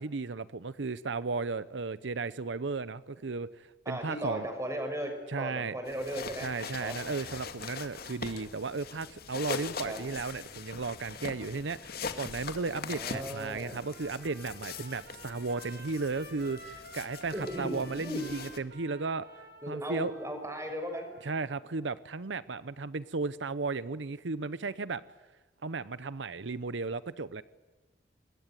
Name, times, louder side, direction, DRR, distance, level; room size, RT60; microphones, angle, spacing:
voice 1, 0.0-4.5 5.3-5.8 6.4-19.3 19.7-20.1 21.2-25.0 25.6-27.4, right 4 dB, 75° right, 16 dB, 0.7 m, -35 dB
voice 2, 3.8-5.1 5.4-6.5 6.8-7.0 9.8-10.0 12.9-13.8 17.3-18.2 19.6-21.1, equal, 15° right, 5 dB, 6.1 m, -36 dB
sound 1, 5.9-18.6, left 5 dB, 55° left, 2.2 m, -42 dB
Trumpet, 13.7-21.8, right 1 dB, 60° right, 6.8 m, -51 dB
26.5 x 21.5 x 9.1 m, 1.3 s
head